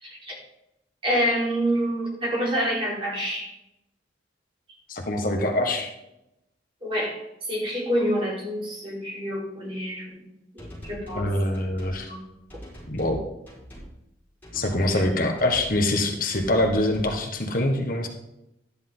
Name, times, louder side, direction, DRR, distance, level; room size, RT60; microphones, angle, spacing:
voice 1, 0.0-0.4 1.0-3.5 6.8-7.1 7.4-11.3 11.9-12.2 14.9-15.0, equal, 30° right, -5 dB, 4.1 m, -27 dB
voice 2, 4.9-5.9 11.1-12.1 12.9-13.2 14.5-18.1, left 1 dB, 50° left, 3 dB, 1.3 m, -24 dB
sound 1, 10.6-11.3 11.5-12.0 12.5-13.2 13.5-13.9 14.4-15.1 15.4-15.9 16.3-17.2, equal, 10° left, 4.8 m, -42 dB
12.5 x 10.0 x 3.8 m, 0.88 s
head